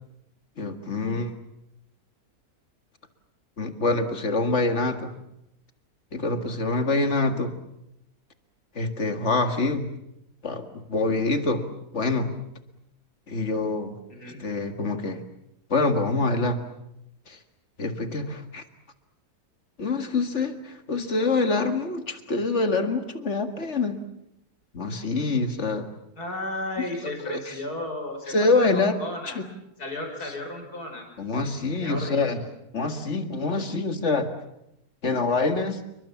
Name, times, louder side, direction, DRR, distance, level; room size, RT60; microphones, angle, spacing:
voice 1, 0.6-1.4 3.6-5.1 6.1-7.6 8.8-9.9 10.4-12.3 13.3-13.9 14.4-15.2 15.7-16.6 17.3-17.4 17.8-18.6 19.8-24.0 24.7-25.9 27.3-27.4 28.3-28.9 29.4-29.5 31.2-32.4 32.7-34.3 35.0-35.8, left 3 dB, 50° left, 8 dB, 2.2 m, -25 dB
voice 2, 14.1-14.4 26.2-29.4 29.8-31.1 31.8-32.4, left 1 dB, 85° left, 3 dB, 6.1 m, -34 dB
29.0 x 23.0 x 7.1 m, 0.83 s
omnidirectional pair, 1.6 m